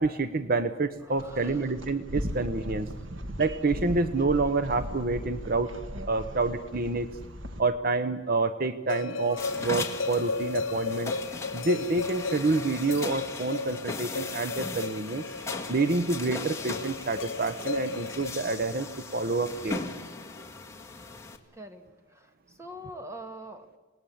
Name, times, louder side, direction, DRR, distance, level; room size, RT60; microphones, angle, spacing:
voice 1, 0.0-2.9 3.4-7.1 7.6-11.1 11.5-15.2 15.7-18.9 19.1-19.8, right 3 dB, 50° right, 11 dB, 0.9 m, -28 dB
voice 2, 1.0-1.8 21.5-23.8, right 1 dB, 15° right, 7 dB, 2.0 m, -44 dB
sound 1, 1.2-7.6, equal, 75° right, 1.7 m, -38 dB
sound 2, 8.9-18.3, left 4 dB, 80° left, 1.3 m, -35 dB
sound 3, 9.4-21.4, left 3 dB, 15° left, 2.1 m, -38 dB
27.5 x 19.5 x 8.7 m, 1.3 s
head